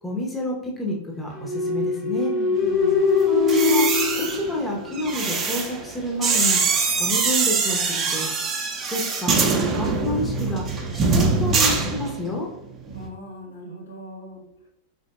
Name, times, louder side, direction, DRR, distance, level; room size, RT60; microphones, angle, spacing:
voice 1, 0.0-2.3 3.5-3.9 4.2-6.6 7.0-8.3 8.8-10.6 10.9-12.5, left 1 dB, 10° left, -2 dB, 0.9 m, -29 dB
sound 1, 1.3-5.2, left 4 dB, 35° left, 1.1 m, -22 dB
voice 2, 2.3-3.1 12.9-14.7, equal, 70° left, -2 dB, 1.0 m, -39 dB
sound 2, 3.4-12.5 12.7-13.1, right 4 dB, 25° right, 0.7 m, -23 dB
4.3 x 4.1 x 2.3 m, 0.80 s
figure-of-eight pair, 90°, 0 cm